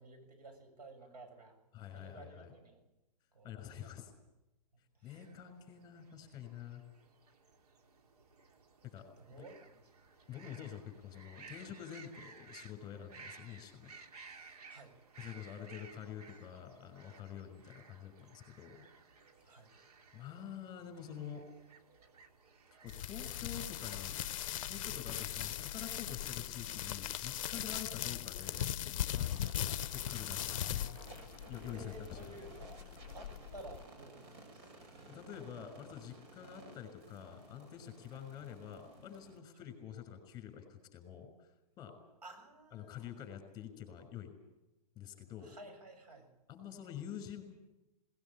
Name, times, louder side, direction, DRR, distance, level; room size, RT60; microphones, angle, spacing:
voice 1, 0.0-1.6 1.9-2.8 3.3-3.9 5.0-5.2 9.2-9.8 14.7-15.0 19.5-19.7 31.7-32.9 33.1-34.7 38.1-38.2 42.2-43.1 45.4-46.3, right 2 dB, 90° right, 6 dB, 7.1 m, -53 dB
voice 2, 1.7-2.5 3.4-4.1 5.0-6.8 8.8-9.4 10.3-13.9 15.2-18.9 20.1-21.5 22.8-24.2 24.7-29.3 29.9-31.0 31.5-32.4 35.0-41.5 41.8-41.9 42.7-44.3 45.0-45.5 46.5-47.4, left 9 dB, 20° left, 8 dB, 5.9 m, -47 dB
sound 1, 5.1-24.3, right 4 dB, 75° right, 3.1 m, -58 dB
sound 2, 22.9-33.8, left 11 dB, 55° left, 0.7 m, -39 dB
sound 3, 29.3-39.4, right 2 dB, 45° right, 6.2 m, -56 dB
19.5 x 19.5 x 8.8 m, 0.95 s
hypercardioid pair, 140°, 20 cm